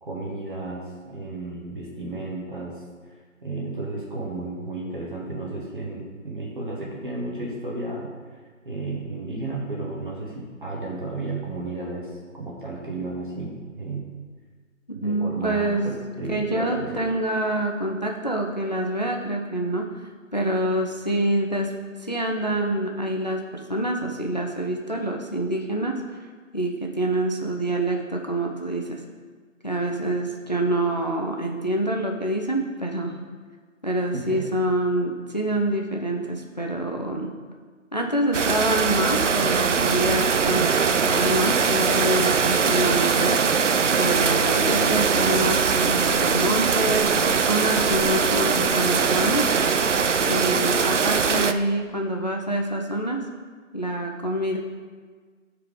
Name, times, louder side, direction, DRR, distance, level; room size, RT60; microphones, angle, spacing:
voice 1, 0.0-2.8 3.4-8.4 8.6-14.0 14.9-17.0 34.1-34.5, right 2 dB, 40° right, -3 dB, 1.5 m, -33 dB
voice 2, 15.0-15.9 16.3-19.9 20.3-21.7 22.0-26.2 26.5-29.0 29.6-33.2 33.8-37.3 37.9-43.4 44.0-49.5 50.2-53.2 53.7-54.6, right 1 dB, 35° left, 2 dB, 0.6 m, -26 dB
sound 1, 38.3-51.5, right 5 dB, 65° right, 0.6 m, -21 dB
13.0 x 4.8 x 3.7 m, 1.5 s
figure-of-eight pair, 170°, 40 cm